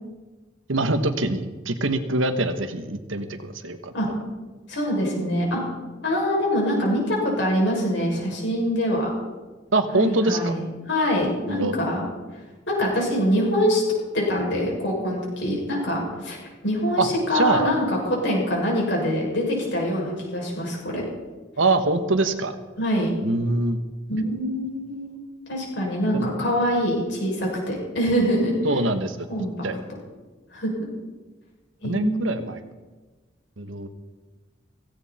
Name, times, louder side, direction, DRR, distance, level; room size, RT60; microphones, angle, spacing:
voice 1, 0.7-3.9 9.7-10.5 11.5-11.8 17.0-17.1 17.3-17.7 21.6-22.5 23.2-23.8 26.1-26.3 28.6-29.3 29.6-29.7 31.8-32.6 33.6-33.9, right 2 dB, 85° right, 9 dB, 1.4 m, -24 dB
voice 2, 4.7-5.6 6.0-9.1 9.9-12.1 12.7-16.4 16.6-21.0 22.8-23.1 24.1-25.2 25.5-28.5 29.3-29.7 30.5-30.7 31.8-32.3, equal, 65° left, -2 dB, 6.7 m, -24 dB
17.0 x 16.5 x 4.4 m, 1.3 s
head